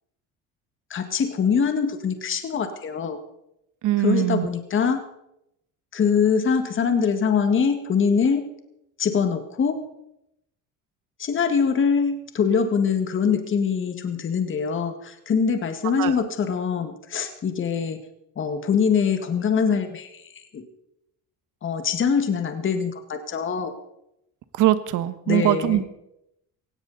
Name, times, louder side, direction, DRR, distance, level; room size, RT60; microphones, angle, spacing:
voice 1, 0.9-3.2 4.0-5.0 5.9-8.5 9.0-9.8 11.2-18.0 18.4-20.2 20.5-20.6 21.6-23.7 25.3-25.9, left 6 dB, 35° left, 7 dB, 1.8 m, -23 dB
voice 2, 3.8-4.5 16.0-16.1 24.6-25.9, right 13 dB, 65° right, 12 dB, 1.3 m, -21 dB
17.5 x 16.0 x 4.1 m, 0.82 s
cardioid pair, 120°, 34 cm